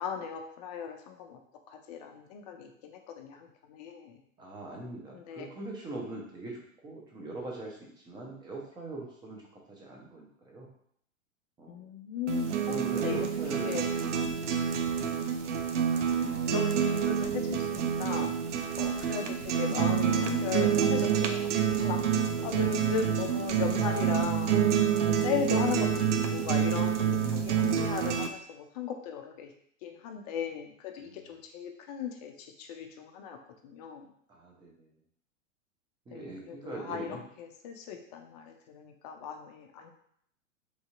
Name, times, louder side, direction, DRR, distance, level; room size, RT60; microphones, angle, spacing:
voice 1, 0.0-1.4 1.7-4.2 5.1-5.5 11.7-13.2 13.6-13.9 16.0-18.3 18.8-24.5 25.0-29.5 29.8-33.4 33.6-34.1 36.1-39.9, left 7 dB, 30° left, 4 dB, 0.5 m, -37 dB
voice 2, 4.4-9.4 9.7-10.7 11.6-11.9 12.6-14.6 22.1-22.7 31.0-31.3 34.3-34.9 36.1-37.2, right 2 dB, 10° right, -2 dB, 0.7 m, -42 dB
sound 1, 12.3-28.3, right 8 dB, 65° right, 0.5 m, -28 dB
4.0 x 3.2 x 2.4 m, 0.67 s
figure-of-eight pair, 100°, 40 cm